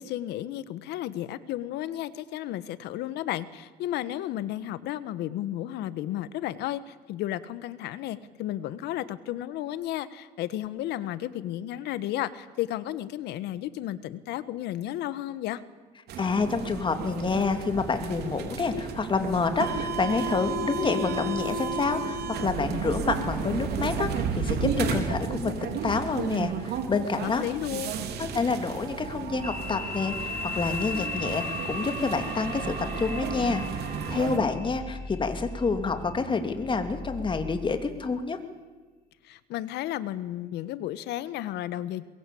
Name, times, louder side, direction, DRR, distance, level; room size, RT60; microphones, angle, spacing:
voice 1, 0.0-15.6 27.2-28.1 39.2-42.1, left 13 dB, 85° left, 15 dB, 1.3 m, -33 dB
sound 1, 16.1-34.4, right 5 dB, 70° right, 3.3 m, -32 dB
voice 2, 16.2-27.4 28.2-33.6 34.1-38.4, left 4 dB, 30° left, 7 dB, 2.7 m, -28 dB
sound 2, 29.4-38.0, left 4 dB, 10° left, 3.3 m, -38 dB
22.5 x 21.5 x 8.5 m, 1.3 s
cardioid pair, 110°, 17 cm